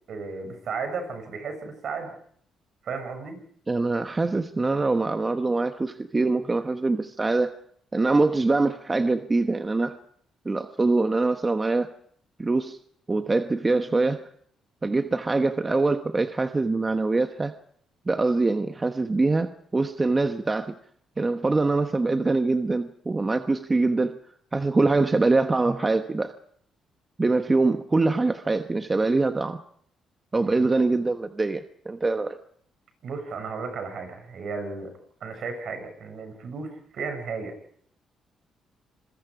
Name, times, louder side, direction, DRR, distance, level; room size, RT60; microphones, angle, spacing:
voice 1, 0.1-2.1 2.8-3.4 30.3-30.7 33.0-34.9 35.2-37.5, right 4 dB, 60° right, 7 dB, 6.9 m, -34 dB
voice 2, 3.7-7.6 7.9-10.0 10.4-11.9 12.4-12.8 13.1-14.3 14.8-17.5 18.1-20.7 21.2-24.1 24.5-26.4 27.2-29.6 30.3-32.4, right 3 dB, 25° right, 8 dB, 1.1 m, -24 dB
26.5 x 22.0 x 5.0 m, 0.64 s
cardioid pair, 90°, 0 cm